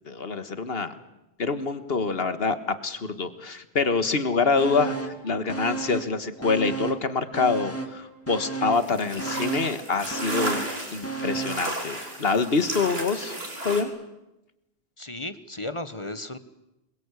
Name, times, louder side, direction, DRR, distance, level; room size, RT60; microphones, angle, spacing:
voice 1, 0.1-0.9 1.4-10.7 10.9-13.4 13.6-13.9, left 4 dB, 60° left, 11 dB, 1.8 m, -26 dB
sound 1, 4.5-5.4 7.9-8.3 8.6-9.2 10.4-10.5, equal, 45° right, 5.4 m, -48 dB
sound 2, 4.6-5.2 5.5-7.1 7.3-11.7 12.1-12.2, right 4 dB, 10° left, 2.5 m, -33 dB
sound 3, 8.7-13.8, right 1 dB, 65° right, 4.8 m, -34 dB
voice 2, 15.0-16.4, left 2 dB, 30° left, 12 dB, 1.2 m, -34 dB
28.0 x 22.5 x 8.3 m, 0.94 s
omnidirectional pair, 1.1 m